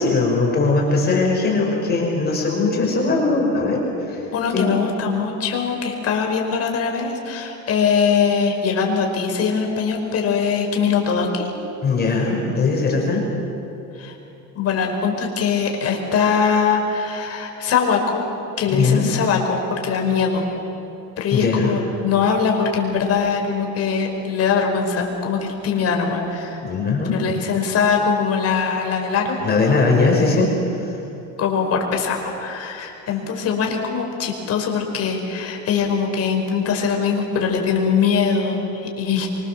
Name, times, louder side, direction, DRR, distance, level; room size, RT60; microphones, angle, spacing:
voice 1, 0.0-4.2 4.5-4.8 11.8-13.3 18.7-19.2 21.3-21.7 26.6-27.2 29.4-31.0, left 3 dB, 30° left, -1 dB, 5.3 m, -20 dB
voice 2, 4.3-11.5 14.0-14.1 14.5-18.2 18.6-20.4 21.2-26.6 27.1-29.4 31.4-39.3, left 6 dB, 45° left, 2 dB, 4.8 m, -22 dB
26.0 x 24.5 x 7.5 m, 2.9 s
cardioid pair, 145°, 35 cm